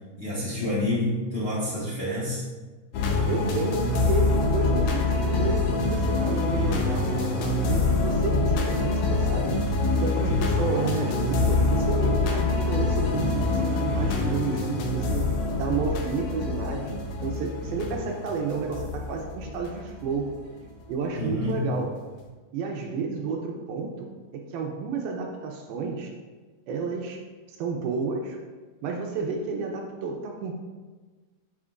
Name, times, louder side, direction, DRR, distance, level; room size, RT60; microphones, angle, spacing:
voice 1, 0.2-2.4 21.2-21.7, left 1 dB, 50° left, -9 dB, 1.6 m, -28 dB
sound 1, 2.9-20.6 21.3-21.5, left 2 dB, 70° left, 2.6 m, -25 dB
voice 2, 3.3-9.5 10.0-15.3 15.5-16.9 17.2-20.3 20.9-21.9 22.5-26.1 26.7-27.2 27.5-28.4 28.8-30.5, right 4 dB, 80° right, 1 dB, 2.5 m, -31 dB
9.5 x 7.8 x 2.5 m, 1.3 s
omnidirectional pair, 4.7 m